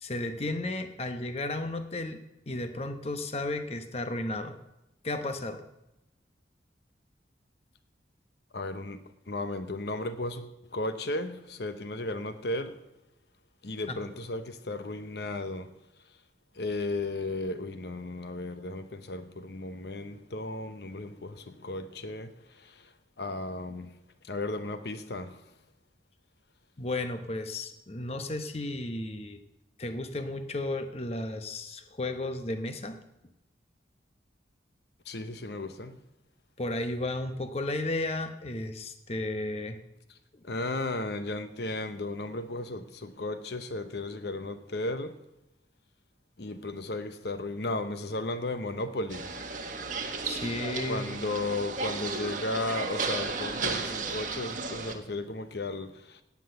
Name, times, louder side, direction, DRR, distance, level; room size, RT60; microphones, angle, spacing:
voice 1, 0.0-2.2 2.5-4.6 5.0-5.6 13.9-14.0 26.8-29.4 29.8-33.0 36.6-39.8 50.2-51.0, left 2 dB, 35° left, 0.9 m, -33 dB
voice 2, 8.5-9.0 9.3-12.8 13.6-15.7 16.6-22.9 23.2-23.9 24.2-25.4 35.1-36.0 40.4-45.2 46.4-49.3 50.9-56.2, left 2 dB, 65° left, 0.8 m, -35 dB
sound 1, 49.1-54.9, right 4 dB, 45° right, 1.4 m, -34 dB
17.5 x 8.4 x 6.8 m
head